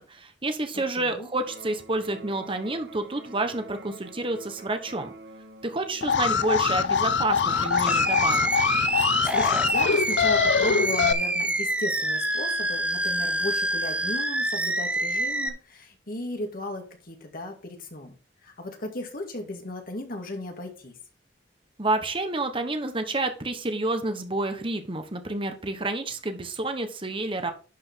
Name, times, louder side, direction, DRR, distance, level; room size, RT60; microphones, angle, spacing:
voice 1, 0.0-5.1 5.6-8.5 21.8-27.5, right 2 dB, 30° right, 7 dB, 1.3 m, -29 dB
voice 2, 0.7-1.3 9.2-18.1 18.4-21.0, left 1 dB, 55° left, 3 dB, 2.3 m, -35 dB
Electric guitar, 1.4-9.4, right 3 dB, 60° right, 1.4 m, -48 dB
Alarm, 6.0-11.1, left 6 dB, 75° left, 0.6 m, -23 dB
Animal, 7.5-15.5, right 1 dB, 5° right, 0.9 m, -27 dB
11.5 x 5.3 x 4.1 m, 0.36 s
head